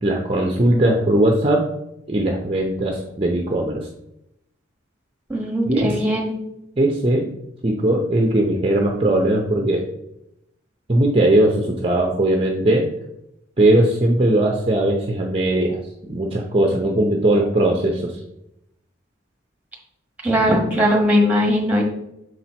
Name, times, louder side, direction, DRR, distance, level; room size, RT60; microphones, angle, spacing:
voice 1, 0.0-1.7 2.1-3.9 5.7-5.9 6.8-7.3 7.6-9.8 10.9-12.9 13.6-15.8 16.1-18.1, right 1 dB, 30° right, 1 dB, 0.6 m, -19 dB
voice 2, 5.3-6.3 20.2-21.8, equal, 5° right, -1 dB, 1.2 m, -19 dB
6.5 x 4.3 x 4.3 m, 0.83 s
head